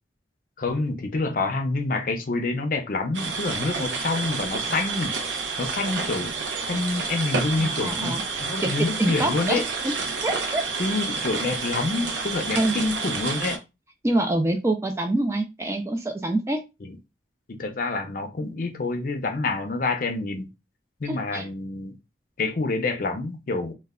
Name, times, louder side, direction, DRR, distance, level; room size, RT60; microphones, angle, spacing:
voice 1, 0.6-5.2 5.6-6.3 6.7-9.7 10.8-13.6 16.8-17.0 17.5-20.5 21.0-21.9 22.4-23.7, left 3 dB, 50° left, 0.5 m, -27 dB
sound 1, 3.1-13.6, right 4 dB, 90° right, 0.6 m, -29 dB
voice 2, 7.6-8.2 8.6-9.9 10.2-10.6 12.5-12.7 14.0-16.6 21.1-21.5, right 1 dB, 15° right, 0.3 m, -26 dB
2.2 x 2.1 x 3.5 m
head